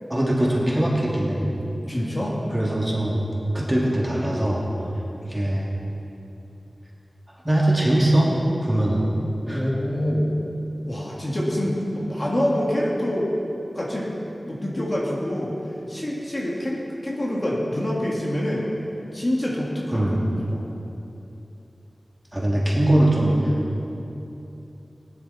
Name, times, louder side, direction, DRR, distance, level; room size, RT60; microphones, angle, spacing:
voice 1, 0.1-1.4 2.5-3.3 3.5-4.6 5.2-5.7 7.4-8.3 8.6-9.1 9.5-9.6 19.9-20.2 22.3-23.5, right 1 dB, 15° right, -5 dB, 2.8 m, -21 dB
voice 2, 1.9-2.4 9.4-10.3 10.9-13.3 13.7-14.2 14.4-15.6 15.9-18.7 19.1-20.0 20.5-20.6, left 1 dB, 40° left, -4 dB, 2.4 m, -26 dB
16.5 x 11.0 x 4.4 m, 2.9 s
wide cardioid pair, 50°, 0 cm